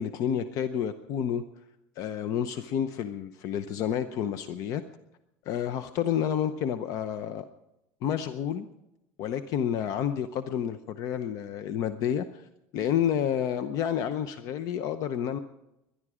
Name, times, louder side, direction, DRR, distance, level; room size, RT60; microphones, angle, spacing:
voice 1, 0.0-1.4 2.0-4.8 5.5-7.5 8.0-8.7 9.2-12.5 12.7-15.4, left 9 dB, 50° left, 11 dB, 0.7 m, -29 dB
20.5 x 11.0 x 4.9 m, 0.91 s
cardioid pair, 140°, 7 cm